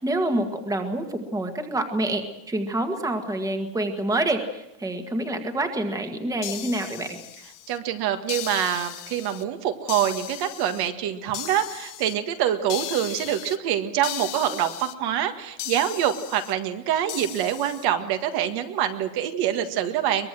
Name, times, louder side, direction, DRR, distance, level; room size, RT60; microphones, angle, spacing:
voice 1, 0.0-7.2, right 1 dB, 5° right, 6 dB, 1.7 m, -27 dB
sound 1, 6.4-7.8 8.3-9.4 9.9-10.9 11.3-12.1 12.7-13.6 14.0-14.9 15.6-16.5 17.1-17.9, left 15 dB, 40° left, 1.0 m, -36 dB
voice 2, 7.7-20.3, right 10 dB, 50° right, 7 dB, 1.9 m, -25 dB
23.5 x 21.0 x 7.7 m, 0.88 s
cardioid pair, 175°, 49 cm